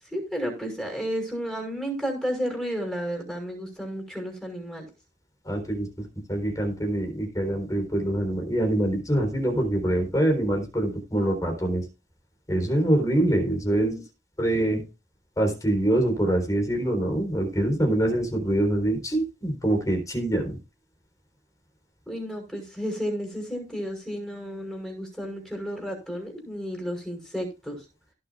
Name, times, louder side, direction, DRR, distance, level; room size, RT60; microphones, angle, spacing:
voice 1, 0.0-4.9 13.7-14.0 14.7-14.8 22.1-27.8, equal, 5° left, 1 dB, 6.1 m, -32 dB
voice 2, 5.4-11.8 12.5-13.9 14.4-14.8 15.4-20.6, right 1 dB, 20° left, 3 dB, 3.9 m, -25 dB
17.5 x 7.0 x 2.4 m, 0.30 s
head